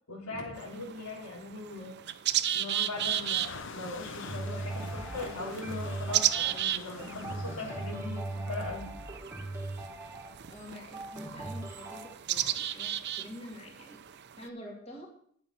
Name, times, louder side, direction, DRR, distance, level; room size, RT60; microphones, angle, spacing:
voice 1, 0.1-2.0 2.5-8.9, left 2 dB, 85° left, -2 dB, 3.6 m, -40 dB
sound 1, 0.6-14.5, right 12 dB, 50° right, 0.5 m, -35 dB
sound 2, 2.9-8.0, left 5 dB, 55° left, 0.7 m, -45 dB
sound 3, 4.2-12.2, right 2 dB, 10° right, 1.5 m, -39 dB
voice 2, 10.5-14.0 14.4-15.1, left 1 dB, 30° left, 0 dB, 2.1 m, -46 dB
10.5 x 7.8 x 6.0 m, 0.64 s
head